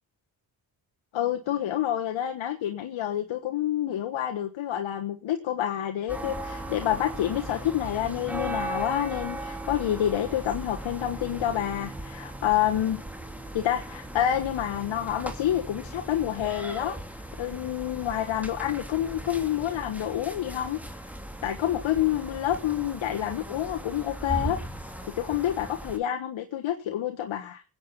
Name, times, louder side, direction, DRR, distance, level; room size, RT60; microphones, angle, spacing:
voice 1, 1.1-13.0 13.5-20.8 21.4-24.6 25.1-27.6, left 11 dB, 75° left, 5 dB, 1.3 m, -28 dB
sound 1, 6.1-26.0, right 1 dB, 5° right, 2.6 m, -38 dB
20.5 x 8.6 x 5.4 m, 0.38 s
supercardioid pair, 50°, 47 cm